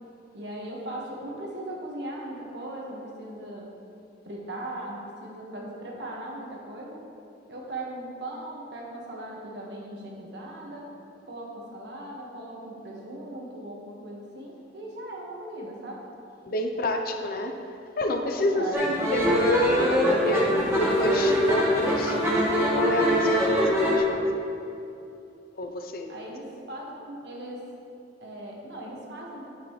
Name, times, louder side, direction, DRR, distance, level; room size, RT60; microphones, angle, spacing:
voice 1, 0.3-3.7 4.2-7.0 7.5-10.9 11.3-16.0 18.1-18.7 26.1-27.7 28.2-29.5, right 1 dB, 70° right, -2 dB, 1.6 m, -38 dB
voice 2, 16.4-17.7 18.0-22.4 22.7-24.5 25.5-26.1, left 1 dB, 55° left, 5 dB, 0.6 m, -29 dB
sound 1, 18.7-24.0, equal, 15° right, 1.5 m, -23 dB
9.9 x 7.9 x 3.2 m, 2.7 s
head